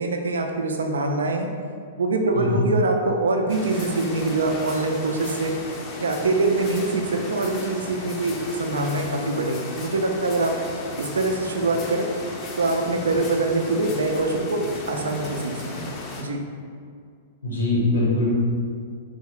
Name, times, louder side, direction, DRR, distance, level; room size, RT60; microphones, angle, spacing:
voice 1, 0.0-1.5 2.0-5.5 6.0-10.5 11.0-12.1 12.6-15.5 15.9-16.4, right 2 dB, 75° right, 3 dB, 0.3 m, -24 dB
sound 1, 3.5-16.2, left 2 dB, 35° left, 0.5 m, -36 dB
voice 2, 17.4-18.3, left 2 dB, 75° left, -4 dB, 0.9 m, -22 dB
3.6 x 2.0 x 3.1 m, 2.2 s
figure-of-eight pair, 105°, 0 cm